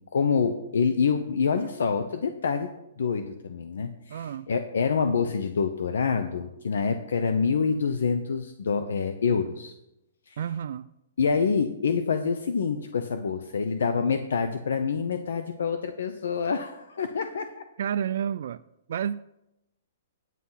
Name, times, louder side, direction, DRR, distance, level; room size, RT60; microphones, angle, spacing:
voice 1, 0.1-2.7 3.0-9.7 10.3-10.4 11.2-17.5, left 5 dB, 80° left, 8 dB, 0.8 m, -26 dB
voice 2, 4.1-4.5 10.4-10.9 17.8-18.6 18.9-19.4, right 8 dB, 65° right, 10 dB, 0.3 m, -30 dB
9.1 x 8.4 x 5.7 m, 0.87 s
hypercardioid pair, 150°, 0 cm